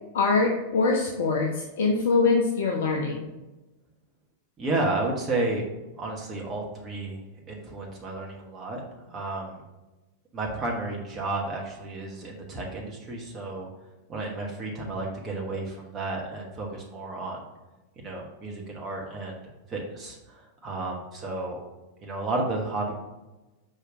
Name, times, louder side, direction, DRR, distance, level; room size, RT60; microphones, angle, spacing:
voice 1, 0.1-3.3, left 4 dB, 60° left, 1 dB, 0.7 m, -23 dB
voice 2, 4.6-5.6 6.0-7.2 7.5-9.6 10.3-13.7 14.1-17.4 18.0-21.6 22.0-22.9, right 2 dB, 25° right, -2 dB, 1.3 m, -32 dB
6.5 x 5.0 x 3.8 m, 1.1 s
figure-of-eight pair, 90°, 0 cm